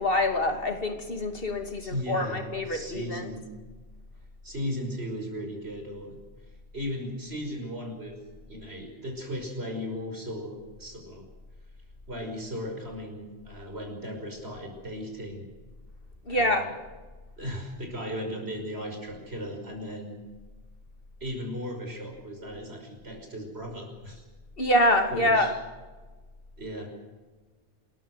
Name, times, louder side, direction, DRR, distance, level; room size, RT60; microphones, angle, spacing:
voice 1, 0.0-3.3 16.3-16.7 24.6-25.6, left 1 dB, 55° left, 5 dB, 2.8 m, -25 dB
voice 2, 1.8-3.5 4.4-6.2 6.7-8.2 8.5-11.3 12.1-15.5 16.3-16.7 17.4-20.2 21.2-24.2 25.1-25.5 26.6-26.9, equal, 70° right, 2 dB, 6.1 m, -36 dB
28.0 x 14.5 x 8.0 m, 1.3 s
omnidirectional pair, 1.1 m